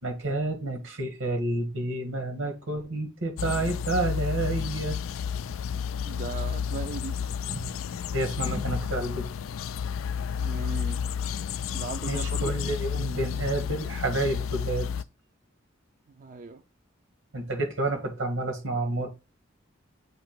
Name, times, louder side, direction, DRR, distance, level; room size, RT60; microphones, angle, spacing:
voice 1, 0.0-5.0 7.5-7.6 8.1-9.3 12.1-14.9 17.3-19.1, right 2 dB, 85° right, 1.8 m, -29 dB
sound 1, 3.4-15.0, left 7 dB, 80° left, 0.3 m, -31 dB
voice 2, 6.0-7.2 10.4-11.0 11.7-12.6 16.2-16.6, right 4 dB, 40° right, 0.5 m, -37 dB
7.9 x 2.9 x 5.9 m
head